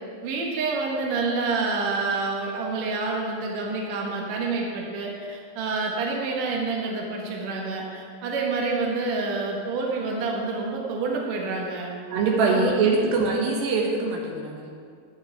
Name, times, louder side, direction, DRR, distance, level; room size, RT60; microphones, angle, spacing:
voice 1, 0.2-11.9 12.4-12.7, right 3 dB, 60° right, -1 dB, 2.2 m, -28 dB
voice 2, 12.1-14.7, right 4 dB, 80° right, 0 dB, 2.8 m, -23 dB
11.0 x 9.4 x 3.4 m, 2.2 s
omnidirectional pair, 4.1 m